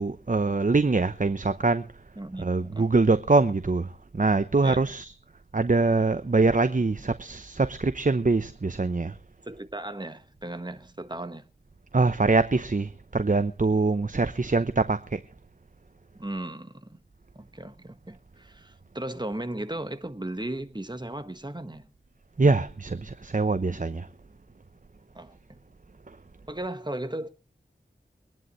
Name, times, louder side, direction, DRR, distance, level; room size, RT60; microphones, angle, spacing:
voice 1, 0.0-1.9 2.4-5.1 5.5-9.2 11.9-15.2 22.4-24.1, right 3 dB, 45° right, 0.8 m, -24 dB
voice 2, 2.2-2.9 4.6-4.9 9.4-11.4 16.1-17.0 17.3-21.9 25.1-25.4 26.5-27.3, right 1 dB, 25° right, 1.5 m, -36 dB
23.5 x 10.5 x 3.2 m
wide cardioid pair, 40°, 19 cm